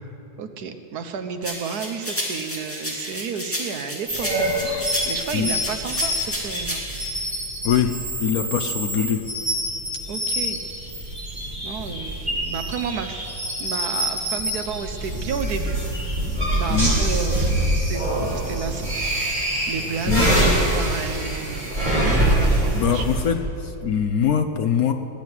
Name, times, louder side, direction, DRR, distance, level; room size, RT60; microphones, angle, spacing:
voice 1, 0.4-6.8 10.1-10.6 11.6-13.3 13.6-15.8 16.5-18.9 19.7-23.3, right 6 dB, 60° right, 8 dB, 1.3 m, -32 dB
sound 1, 1.4-7.1, equal, 5° left, 2.1 m, -31 dB
sound 2, 4.1-23.3, right 1 dB, 20° right, 3.5 m, -25 dB
voice 2, 8.2-9.2 16.7-17.0 20.1-20.3 22.7-24.9, left 8 dB, 65° left, 6 dB, 1.0 m, -22 dB
19.0 x 7.5 x 9.6 m, 2.8 s
omnidirectional pair, 2.1 m